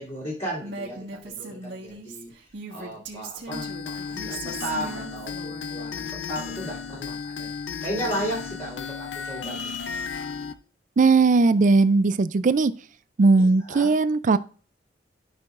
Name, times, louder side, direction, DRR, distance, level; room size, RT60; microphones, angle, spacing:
voice 1, 0.0-2.3 2.7-7.5 7.8-9.8 13.4-13.9, equal, 40° left, -8 dB, 3.1 m, -35 dB
Female speech woman speaking, 0.6-5.7, right 3 dB, 70° right, 1.6 m, -38 dB
sound 1, 3.5-10.5, left 5 dB, 90° left, 0.6 m, -34 dB
voice 2, 11.0-12.7 13.2-14.4, right 3 dB, 45° right, 14 dB, 0.4 m, -18 dB
12.0 x 5.7 x 2.5 m, 0.39 s
head